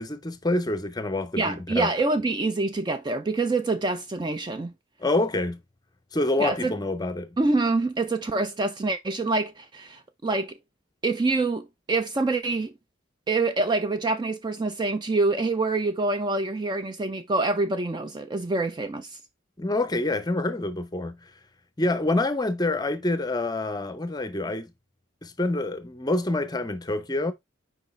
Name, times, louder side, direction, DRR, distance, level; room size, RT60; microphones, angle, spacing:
voice 1, 0.0-1.9 5.0-5.6 6.1-7.4 19.6-21.3 21.8-24.7 25.2-27.3, left 2 dB, 20° left, 0.6 m, -27 dB
voice 2, 1.4-4.7 6.4-6.7 7.4-10.5 11.0-12.7 13.3-19.2, right 3 dB, 20° right, 0.3 m, -26 dB
6.2 x 4.8 x 3.2 m
head